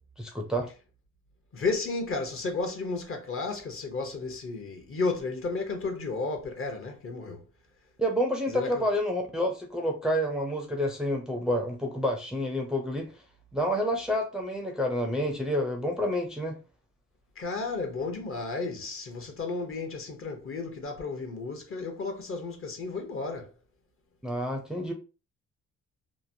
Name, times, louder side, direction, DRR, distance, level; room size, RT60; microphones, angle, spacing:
voice 1, 0.2-0.7 8.0-13.1 13.5-16.6 24.2-24.9, equal, ahead, 0.5 m, -29 dB
voice 2, 1.5-7.4 8.5-8.8 17.4-23.5, left 3 dB, 45° left, 0.9 m, -33 dB
3.0 x 2.1 x 2.7 m
cardioid pair, 90°, 30 cm